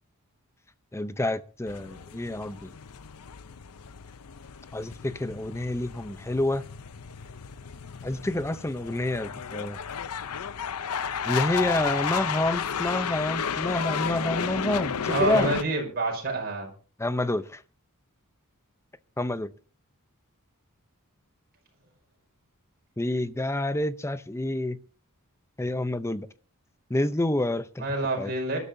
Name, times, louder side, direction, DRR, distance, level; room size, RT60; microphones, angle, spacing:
voice 1, 0.9-2.7 4.7-6.6 8.0-9.8 11.2-15.5 17.0-17.6 19.2-19.5 23.0-24.8 25.6-26.3 26.9-27.8 28.2-28.3, left 1 dB, 10° left, 0.6 m, -28 dB
sound 1, 1.7-15.6, left 7 dB, 85° left, 0.7 m, -33 dB
voice 2, 15.1-16.7 27.8-28.6, right 2 dB, 45° right, 5.5 m, -27 dB
24.0 x 12.5 x 2.7 m
head